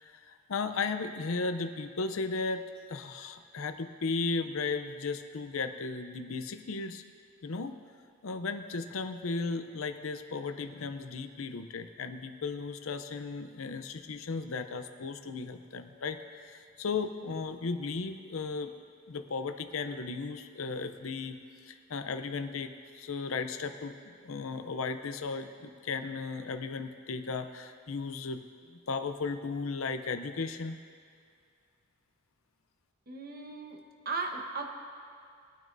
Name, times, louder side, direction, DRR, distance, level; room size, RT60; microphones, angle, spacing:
voice 1, 0.0-2.6 2.9-7.0 7.4-7.8 8.2-18.7 19.1-22.7 22.9-28.4 28.7-30.8, left 4 dB, 70° left, 8 dB, 0.6 m, -35 dB
voice 2, 33.1-33.8 34.0-34.7, right 4 dB, 45° right, 2 dB, 1.1 m, -36 dB
20.5 x 9.2 x 2.7 m, 2.3 s
head